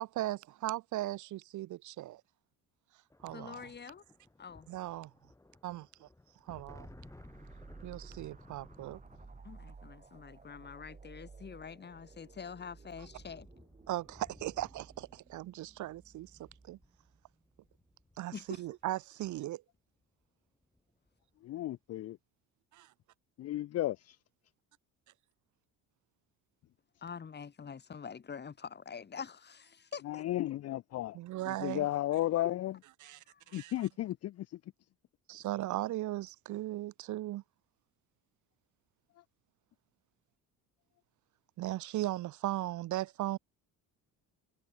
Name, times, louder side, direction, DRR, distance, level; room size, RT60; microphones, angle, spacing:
voice 1, 0.0-2.2 3.2-3.7 4.7-5.1 5.6-6.1 6.5-6.9 7.8-9.0 13.9-16.3 16.7-16.8 18.2-18.3 18.6-19.6 22.7-22.9 31.2-31.8 33.0-33.2 33.5-33.7 35.3-37.4 41.6-43.4, right 15 dB, 55° right, 0.7 m, -37 dB
sound 1, 3.1-18.8 20.0-20.3 20.5-21.2, left 2 dB, 10° left, 3.7 m, -59 dB
voice 2, 3.3-4.0 4.4-4.7 9.4-13.5 18.3-18.6 27.0-30.2 33.3-33.6, left 6 dB, 30° left, 4.0 m, -46 dB
sound 2, 6.6-17.9, right 4 dB, 20° right, 7.7 m, -56 dB
voice 3, 21.4-22.2 23.4-24.2 30.0-31.2 31.4-32.8 33.5-34.7 39.2-39.3, left 14 dB, 45° left, 0.6 m, -34 dB
cardioid pair, 140°, 35 cm